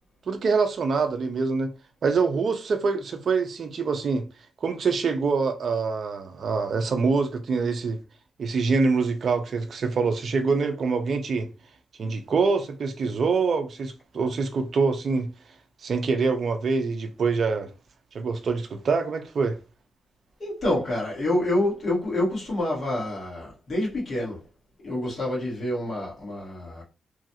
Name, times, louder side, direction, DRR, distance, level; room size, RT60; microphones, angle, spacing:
voice 1, 0.3-1.7 2.0-4.3 4.6-8.0 8.4-11.5 12.0-15.3 15.8-17.7 18.1-19.6, right 4 dB, 45° right, 0.5 m, -25 dB
voice 2, 20.4-24.4 24.8-26.8, left 1 dB, 35° left, 1.7 m, -27 dB
3.1 x 2.5 x 2.7 m
cardioid pair, 150°, 0 cm